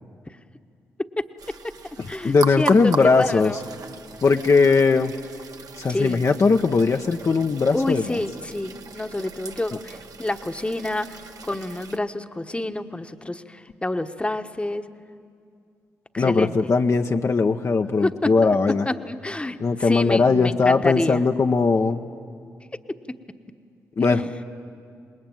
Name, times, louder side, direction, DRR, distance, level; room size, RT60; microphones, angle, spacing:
voice 1, 1.0-1.6 2.1-3.6 5.9-6.2 7.7-14.9 16.1-16.7 18.0-21.2 22.7-23.2 24.0-24.4, left 1 dB, 15° left, 9 dB, 1.2 m, -28 dB
sound 1, 1.4-12.0, right 5 dB, 55° right, 1.2 m, -38 dB
voice 2, 2.2-3.5 4.2-5.1 5.8-8.2 16.2-18.9 19.6-22.0 24.0-24.2, left 4 dB, 45° left, 4 dB, 0.9 m, -19 dB
26.5 x 20.5 x 9.2 m, 2.3 s
supercardioid pair, 45°, 7 cm